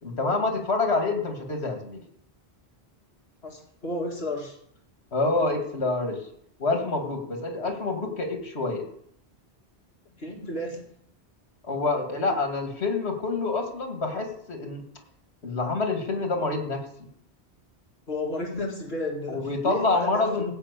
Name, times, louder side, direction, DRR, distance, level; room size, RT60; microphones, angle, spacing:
voice 1, 0.0-2.0 5.1-6.2 6.6-8.9 11.6-14.8 15.4-16.9 19.3-20.5, left 3 dB, 85° left, 4 dB, 2.4 m, -27 dB
voice 2, 3.4-4.6 10.2-10.8 18.1-20.5, left 2 dB, 70° left, 0 dB, 2.4 m, -32 dB
16.0 x 5.8 x 8.2 m, 0.68 s
omnidirectional pair, 1.1 m